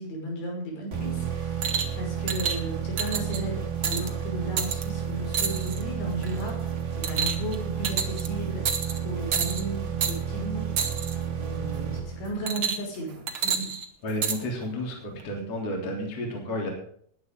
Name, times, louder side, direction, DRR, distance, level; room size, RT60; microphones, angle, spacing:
voice 1, 0.0-6.5 7.0-8.6 9.0-11.0 11.3-13.7, right 1 dB, 70° left, -1 dB, 7.7 m, -35 dB
sound 1, 0.9-12.6, right 8 dB, 35° right, 2.4 m, -31 dB
sound 2, 1.6-1.9 2.3-2.6 3.0-3.4 3.8-4.1 4.6-4.8 5.3-5.8 6.2-6.5 7.0-7.5 7.8-8.3 8.6-9.0 9.3-9.6 10.0-10.2 10.8-11.1 12.5-13.0 13.3-14.4 15.2-15.3, right 7 dB, 65° right, 1.3 m, -28 dB
voice 2, 14.0-16.7, left 1 dB, 35° left, 0 dB, 4.2 m, -31 dB
20.5 x 10.5 x 3.8 m, 0.64 s
omnidirectional pair, 5.2 m